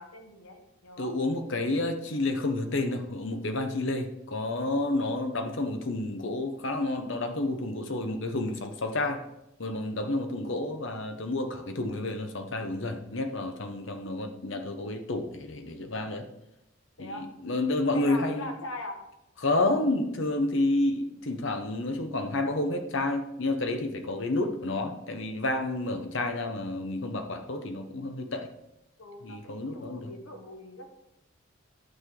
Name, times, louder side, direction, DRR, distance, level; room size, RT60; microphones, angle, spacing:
voice 1, 0.0-1.2 14.0-14.1 17.0-17.3 17.7-19.0 29.0-30.9, left 1 dB, 85° left, 4 dB, 1.5 m, -42 dB
voice 2, 1.0-9.2 9.6-16.3 17.0-18.5 19.4-28.5 29.2-30.1, left 2 dB, 60° left, 6 dB, 1.0 m, -30 dB
11.0 x 6.5 x 3.8 m, 0.87 s
head